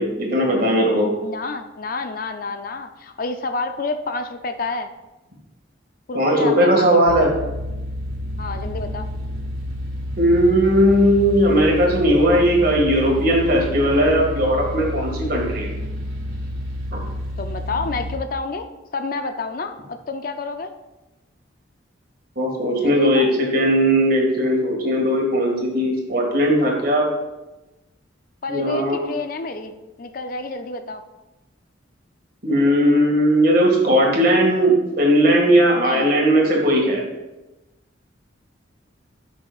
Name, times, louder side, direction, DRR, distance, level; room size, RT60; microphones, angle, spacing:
voice 1, 0.0-1.1 6.1-7.3 10.2-15.7 16.9-17.0 22.4-27.1 28.5-29.0 32.4-37.0, equal, 45° right, -1 dB, 1.9 m, -18 dB
voice 2, 1.2-4.9 6.1-6.9 8.4-9.1 17.4-18.7 18.9-20.7 22.8-23.3 28.4-29.7 30.0-31.0 35.8-36.1, left 3 dB, 45° left, 8 dB, 0.4 m, -29 dB
sound 1, 7.1-18.2, left 1 dB, 85° right, 2.1 m, -30 dB
13.5 x 6.2 x 2.4 m, 1.0 s
head